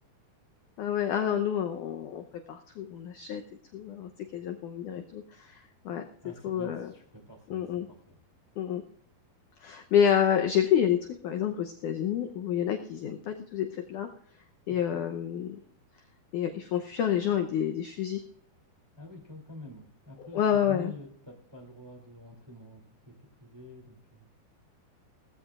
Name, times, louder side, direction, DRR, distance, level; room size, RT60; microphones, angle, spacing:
voice 1, 0.8-3.4 3.7-6.0 6.4-6.9 7.5-7.9 8.6-8.8 9.6-11.0 11.2-14.1 14.7-15.6 16.3-18.2 20.3-20.9, left 9 dB, 80° left, 5 dB, 1.8 m, -28 dB
voice 2, 6.2-8.2 14.7-15.0 19.0-24.3, left 1 dB, 10° right, 1 dB, 1.9 m, -47 dB
18.5 x 15.0 x 2.5 m, 0.63 s
omnidirectional pair, 4.6 m